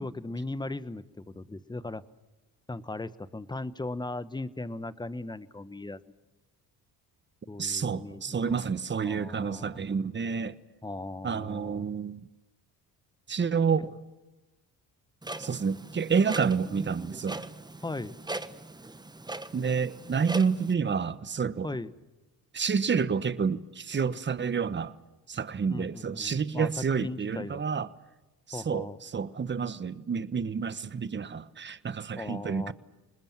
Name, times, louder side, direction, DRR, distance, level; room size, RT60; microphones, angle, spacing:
voice 1, 0.0-2.0 2.7-6.0 7.5-8.7 9.0-10.0 10.8-11.9 17.8-18.2 21.6-21.9 25.7-26.7 27.0-27.6 28.5-29.0 32.2-32.7, left 2 dB, 10° left, 1.2 m, -38 dB
voice 2, 7.6-10.6 11.2-12.3 13.3-14.0 15.4-17.4 19.5-21.7 22.5-24.9 25.3-27.9 28.5-32.7, right 6 dB, 30° right, 1.2 m, -29 dB
Clock, 15.2-20.7, right 2 dB, 10° right, 1.3 m, -40 dB
28.0 x 20.5 x 7.5 m
cardioid pair, 85°, 38 cm